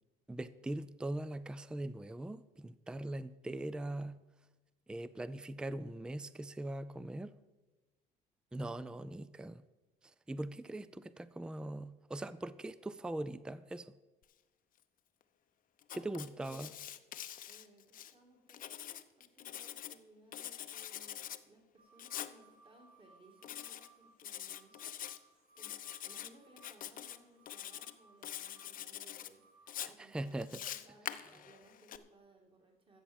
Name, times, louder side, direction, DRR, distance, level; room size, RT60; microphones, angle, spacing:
voice 1, 0.3-4.2 4.9-7.3 8.5-9.6 10.0-13.9 15.9-16.7 29.8-30.5, right 1 dB, 5° right, 16 dB, 0.4 m, -41 dB
Writing, 15.8-18.1 18.5-20.0 20.3-21.4 22.0-22.3 23.4-23.9 24.2-25.2 25.6-26.3 26.6-27.2 27.5-27.9 28.2-29.3 29.7-32.0, left 11 dB, 55° left, 0.7 m, -45 dB
voice 2, 15.9-16.9 17.4-25.7 26.0-33.0, right 1 dB, 30° right, 1 dB, 2.5 m, -63 dB
sound 1, 21.8-29.7, right 3 dB, 80° right, 4.2 m, -66 dB
13.0 x 7.5 x 7.2 m, 1.2 s
cardioid pair, 110°, 17 cm